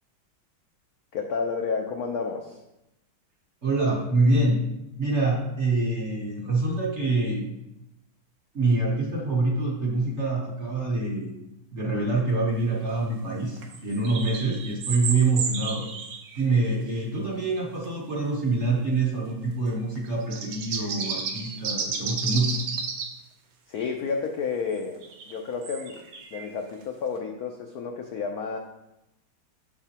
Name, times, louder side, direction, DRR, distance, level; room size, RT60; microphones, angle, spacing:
voice 1, 1.1-2.6 23.7-26.1 26.3-28.6, left 5 dB, 80° left, 2 dB, 0.8 m, -31 dB
voice 2, 3.6-4.6 5.0-7.4 8.5-11.3 11.7-15.9 16.4-22.6, right 2 dB, 50° right, -3 dB, 0.9 m, -25 dB
sound 1, 13.6-16.7 17.8-17.9 20.0-23.1 24.8-26.7, right 5 dB, 80° right, 1.7 m, -32 dB
7.0 x 6.7 x 2.9 m, 0.92 s
omnidirectional pair, 2.3 m